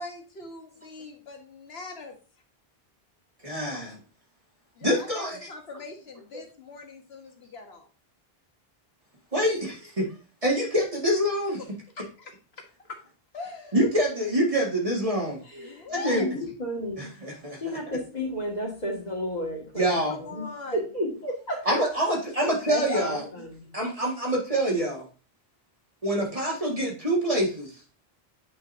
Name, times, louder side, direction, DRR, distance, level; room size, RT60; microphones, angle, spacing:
voice 1, 0.0-2.2 4.7-7.9 11.9-12.4 12.9-13.0 13.3-13.8 15.6-16.3 20.1-20.9, left 3 dB, 90° left, 3 dB, 1.5 m, -41 dB
voice 2, 3.4-4.0 4.8-5.4 9.3-9.7 10.4-11.6 13.7-15.4 16.0-16.3 17.0-17.6 17.9-18.0 19.7-20.2 21.6-23.3 23.7-25.1 26.0-27.7, equal, 35° right, -2 dB, 2.1 m, -25 dB
voice 3, 16.0-17.1 17.6-20.4 20.9-21.6 22.7-23.6, left 1 dB, 45° left, -2 dB, 2.2 m, -32 dB
8.7 x 5.4 x 2.7 m, 0.36 s
omnidirectional pair, 1.0 m